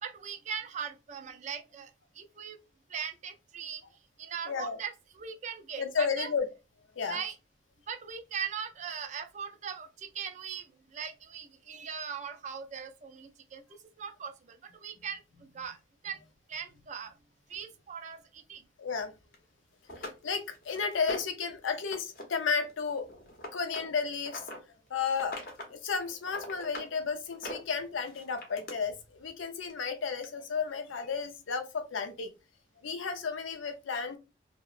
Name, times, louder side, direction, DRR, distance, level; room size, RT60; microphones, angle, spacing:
voice 1, 0.0-1.9 2.2-2.6 2.9-3.8 4.2-6.3 7.0-7.4 7.9-13.6 14.0-15.2 15.5-15.8 16.0-16.2 16.5-17.1 17.5-18.6, right 7 dB, 40° right, 0.3 m, -39 dB
voice 2, 4.5-4.8 5.8-6.5 7.0-7.2 18.8-19.1 20.0-23.1 23.5-24.4 24.9-25.4 25.7-32.3 32.8-34.2, left 5 dB, 85° left, 0.5 m, -33 dB
sound 1, 19.3-19.4 19.9-21.4 21.8-22.2 22.5-24.6 25.1-25.7 26.0-26.9 27.3-28.7 29.7-29.8 30.2-30.3, left 1 dB, 50° left, 0.7 m, -42 dB
2.8 x 2.0 x 2.4 m
head